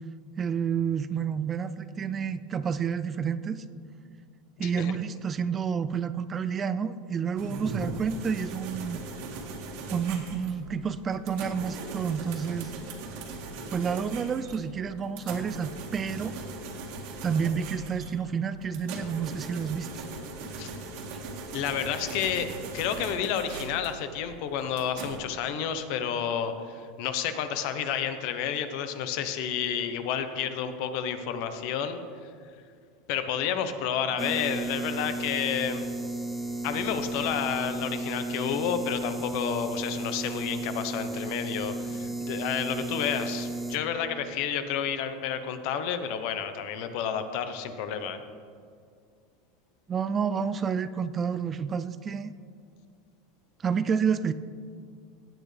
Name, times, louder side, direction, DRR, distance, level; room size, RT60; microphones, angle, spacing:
voice 1, 0.4-3.6 4.6-9.0 9.9-12.7 13.7-16.3 17.2-20.1 49.9-52.3 53.6-54.3, right 6 dB, 20° right, 14 dB, 0.3 m, -29 dB
voice 2, 4.6-4.9 20.6-20.7 21.5-22.5 22.7-32.0 33.1-35.8 36.6-48.2, left 8 dB, 60° left, 9 dB, 1.0 m, -30 dB
sound 1, 7.4-25.2, right 3 dB, 60° right, 1.9 m, -39 dB
sound 2, 34.2-43.8, right 2 dB, 5° right, 0.8 m, -34 dB
16.5 x 9.0 x 3.4 m, 2.2 s
supercardioid pair, 150°, 0 cm